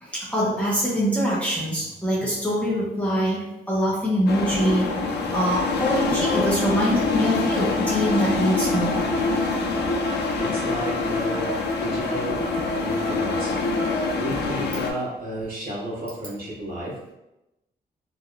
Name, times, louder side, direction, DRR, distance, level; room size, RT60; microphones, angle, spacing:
voice 1, 0.0-4.9 5.2-9.2, equal, 5° left, -8 dB, 0.6 m, -24 dB
sound 1, 4.3-14.9, left 4 dB, 85° left, 0.4 m, -26 dB
sound 2, 5.9-14.1, left 2 dB, 55° left, 0.7 m, -29 dB
voice 2, 10.4-13.6 14.2-17.0, right 1 dB, 55° right, -9 dB, 1.4 m, -32 dB
3.4 x 2.3 x 2.3 m, 0.93 s
wide cardioid pair, 140°, 17 cm